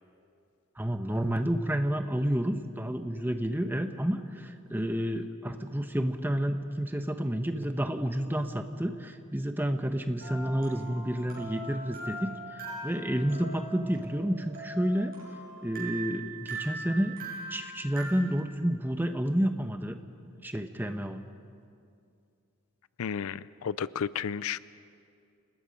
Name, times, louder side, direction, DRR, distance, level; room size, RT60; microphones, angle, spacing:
voice 1, 0.8-15.1 15.6-17.1 17.5-19.9 20.4-21.2, equal, 10° right, 7 dB, 0.9 m, -30 dB
sound 1, 10.2-18.1, right 2 dB, 40° right, 7.1 m, -41 dB
voice 2, 23.0-24.6, left 7 dB, 80° left, 18 dB, 0.4 m, -32 dB
29.0 x 19.5 x 5.3 m, 2.4 s
head